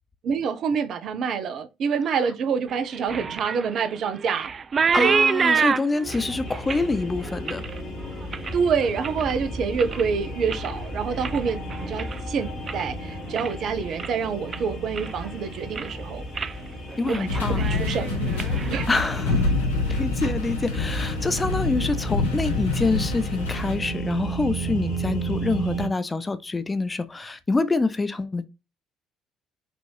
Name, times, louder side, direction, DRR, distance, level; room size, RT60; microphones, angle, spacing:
voice 1, 0.2-4.5 4.9-5.2 5.5-5.7 8.5-16.2 17.1-18.2 18.7-18.9, right 6 dB, 55° right, 0.7 m, -27 dB
sound 1, 2.7-9.3 9.7-10.2 10.4-12.9 13.2-13.7 14.0-14.1 14.5-15.3 15.6-16.0 16.3-16.6 16.9-17.2 17.5-19.4, right 6 dB, 40° right, 0.3 m, -28 dB
voice 2, 4.9-7.6 17.0-17.7 18.5-19.5 19.9-28.5, left 3 dB, 20° left, 0.6 m, -26 dB
sound 2, 6.0-25.9, right 1 dB, 55° left, 1.7 m, -34 dB
sound 3, 17.3-23.7, left 3 dB, 85° left, 1.1 m, -26 dB
6.1 x 2.7 x 3.2 m
hypercardioid pair, 55°, 0 cm